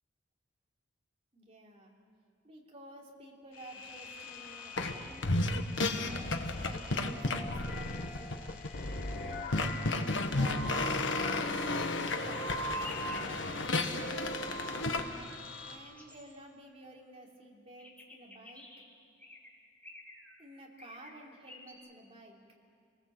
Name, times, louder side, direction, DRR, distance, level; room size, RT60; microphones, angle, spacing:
voice 1, 1.3-1.9 2.4-5.3 5.9-8.5 9.2-11.0 11.6-14.2 15.6-18.7 20.4-22.4, right 1 dB, 30° right, -2 dB, 3.4 m, -52 dB
sound 1, 3.5-15.8, equal, 50° left, 4.5 m, -43 dB
sound 2, 4.8-4.9 5.2-15.0, left 2 dB, 65° left, 1.5 m, -33 dB
sound 3, 12.6-13.3 13.8-14.0 14.3-14.7 15.8-16.3 17.8-18.8 19.2-19.5 19.8-20.4 20.8-21.1 21.5-21.7, left 2 dB, 10° left, 3.2 m, -50 dB
27.5 x 19.5 x 7.9 m, 2.2 s
head